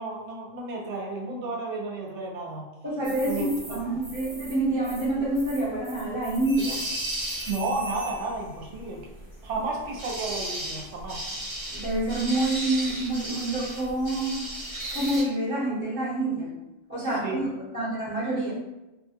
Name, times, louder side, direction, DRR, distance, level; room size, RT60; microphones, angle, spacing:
voice 1, 0.0-2.7 3.2-4.0 7.5-9.1 9.4-11.3 17.2-17.5, right 3 dB, 75° right, -1 dB, 0.9 m, -32 dB
voice 2, 2.8-6.8 11.7-14.5 14.9-16.5 16.9-17.5 17.7-18.5, right 1 dB, 10° right, -13 dB, 0.9 m, -27 dB
sound 1, 3.0-15.2, right 1 dB, 35° right, 1.0 m, -36 dB
sound 2, 6.5-8.5 10.8-11.1, right 1 dB, 55° left, 0.7 m, -39 dB
2.3 x 2.2 x 2.8 m, 1.0 s
omnidirectional pair, 1.2 m